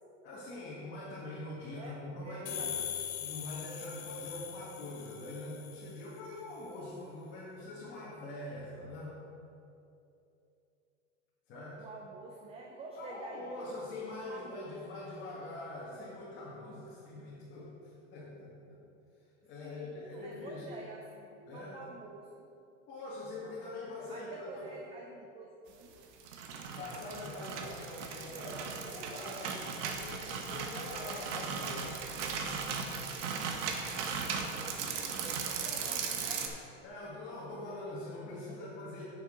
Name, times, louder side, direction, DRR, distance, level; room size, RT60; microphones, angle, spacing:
voice 1, 0.2-2.8 3.2-9.2 11.5-11.9 13.0-18.8 19.4-20.6 21.5-21.8 22.9-24.8 26.8-32.0 36.8-39.0, left 2 dB, 30° left, -8 dB, 1.8 m, -44 dB
voice 2, 1.7-2.7 11.8-13.8 14.2-14.8 19.6-21.3 21.5-22.5 24.1-25.9 28.3-29.1 34.1-36.5 38.3-38.7, right 3 dB, 15° right, 0 dB, 0.5 m, -49 dB
sound 1, 2.5-6.0, left 10 dB, 65° left, 1.2 m, -41 dB
sound 2, 26.0-36.5, right 5 dB, 65° right, 1.2 m, -37 dB
9.7 x 7.3 x 3.8 m, 2.8 s
supercardioid pair, 145°, 37 cm